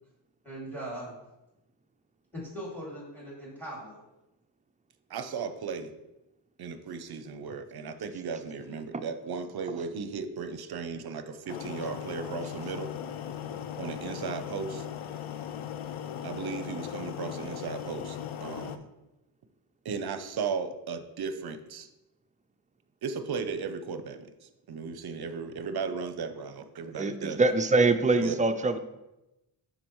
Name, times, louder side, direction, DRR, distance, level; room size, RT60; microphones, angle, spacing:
voice 1, 0.4-1.1 2.3-4.0, right 1 dB, 5° left, -4 dB, 2.4 m, -40 dB
voice 2, 5.1-5.9 6.6-12.9 13.8-14.9 16.2-18.9 19.8-21.9 23.0-24.3 24.7-27.4 28.2-28.4, right 5 dB, 50° right, 10 dB, 0.6 m, -36 dB
sound 1, 11.5-18.8, left 9 dB, 85° left, 0.6 m, -38 dB
voice 3, 27.0-28.8, right 3 dB, 20° right, 8 dB, 0.3 m, -24 dB
11.5 x 4.0 x 3.1 m, 0.96 s
wide cardioid pair, 135°, 47 cm